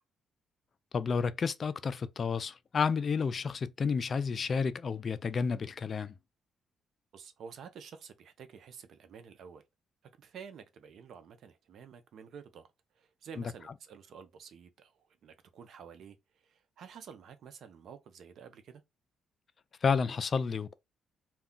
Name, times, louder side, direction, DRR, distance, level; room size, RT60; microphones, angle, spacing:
voice 1, 0.9-6.1 19.8-20.7, left 5 dB, 45° left, 0.3 m, -31 dB
voice 2, 7.1-9.6 10.2-12.7 12.9-18.8, right 7 dB, 65° right, 0.5 m, -50 dB
2.3 x 2.2 x 3.6 m
cardioid pair, 90°, 0 cm